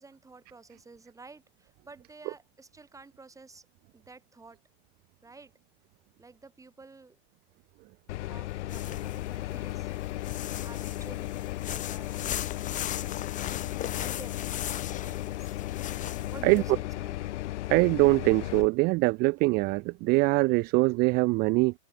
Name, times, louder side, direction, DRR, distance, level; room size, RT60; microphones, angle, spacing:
voice 1, 0.0-3.7 3.9-4.6 5.2-5.5 6.2-7.2 8.3-9.9 10.6-13.5 14.0-15.6 16.3-17.2, right 3 dB, 10° right, 6.0 m, -51 dB
sound 1, 8.1-18.7, left 15 dB, 85° left, 1.9 m, -35 dB
sound 2, 8.7-9.4 10.0-16.6, left 11 dB, 20° left, 1.0 m, -38 dB
voice 2, 17.7-21.7, right 25 dB, 30° right, 0.4 m, -23 dB
open air
supercardioid pair, 150°, 34 cm